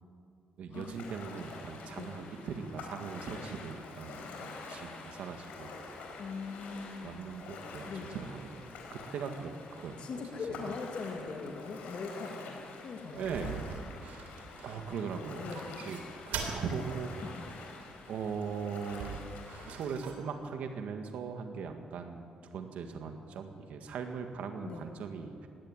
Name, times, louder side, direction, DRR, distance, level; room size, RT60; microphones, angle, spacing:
voice 1, 0.6-6.2 7.0-8.6 8.9-10.0 10.6-10.7 13.1-13.6 14.6-15.6 15.8-16.0 16.3-17.3 18.1-19.2 19.7-25.5, right 6 dB, 65° right, 5 dB, 1.8 m, -40 dB
Ocean, 0.7-19.8, left 3 dB, 85° left, 4.3 m, -47 dB
voice 2, 6.2-7.2 7.9-8.1 10.0-13.5 15.3-15.8 17.2-17.4 24.6-24.8, left 4 dB, 45° left, 2 dB, 2.2 m, -41 dB
sound 1, 13.1-15.0 15.5-16.6 16.9-17.0 18.7-20.2, right 6 dB, 85° right, 3.5 m, -42 dB
18.5 x 17.5 x 9.6 m, 2.4 s
cardioid pair, 165°, 3 cm